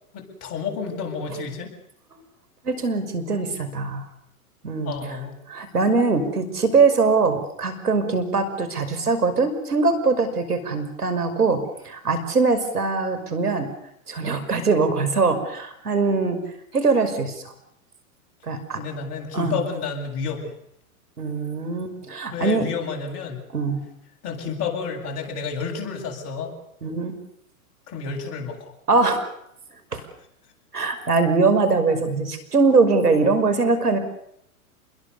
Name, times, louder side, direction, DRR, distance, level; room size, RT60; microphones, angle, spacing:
voice 1, 0.1-1.7 4.8-5.4 18.7-20.5 22.3-23.4 24.2-26.5 27.9-28.7, left 5 dB, 35° left, 1 dB, 7.8 m, -30 dB
voice 2, 2.6-4.1 4.6-5.2 5.5-13.7 14.1-16.4 16.7-17.3 18.4-18.8 19.3-19.6 21.2-22.6 23.5-23.8 26.8-27.1 28.9-29.3 29.9-30.0 30.7-34.0, right 4 dB, 90° right, 10 dB, 5.8 m, -22 dB
29.0 x 21.5 x 6.9 m, 0.74 s
hypercardioid pair, 120°, 45 cm